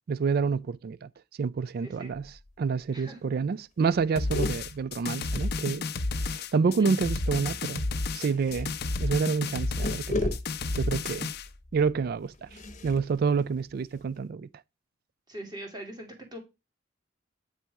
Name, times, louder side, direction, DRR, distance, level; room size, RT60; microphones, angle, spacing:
voice 1, 0.1-1.1 1.4-2.3 2.6-5.8 6.2-7.8 8.1-10.3 10.7-11.3 11.7-12.5 12.8-14.5, right 5 dB, 55° right, 0.3 m, -28 dB
sound 1, 2.1-2.6 2.9-3.0 3.2-3.5 3.8-6.2 7.3-14.2, left 1 dB, 40° left, 1.0 m, -38 dB
sound 2, 4.2-11.5, left 3 dB, 60° left, 0.6 m, -31 dB
voice 2, 15.3-16.4, right 1 dB, 20° right, 2.1 m, -42 dB
8.8 x 4.1 x 4.6 m
head